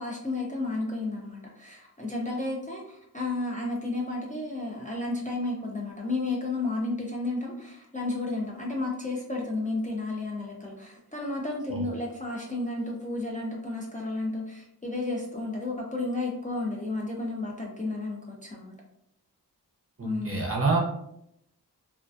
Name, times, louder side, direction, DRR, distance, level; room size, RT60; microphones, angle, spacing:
voice 1, 0.0-18.7 20.0-20.4, left 2 dB, 20° left, -3 dB, 0.4 m, -32 dB
voice 2, 20.0-20.8, right 3 dB, 35° right, -2 dB, 0.7 m, -27 dB
2.3 x 2.2 x 2.4 m, 0.77 s
wide cardioid pair, 45°, 40 cm